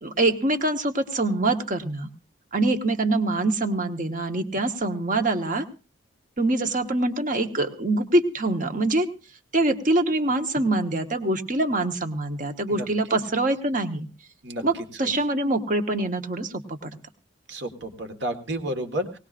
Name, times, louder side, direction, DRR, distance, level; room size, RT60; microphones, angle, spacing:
voice 1, 0.0-2.1 2.5-5.6 6.4-9.1 9.5-14.1 14.6-16.9, right 2 dB, 40° right, 6 dB, 1.1 m, -24 dB
voice 2, 17.5-19.2, right 1 dB, 60° right, 7 dB, 1.6 m, -31 dB
19.0 x 19.0 x 2.5 m, 0.34 s
head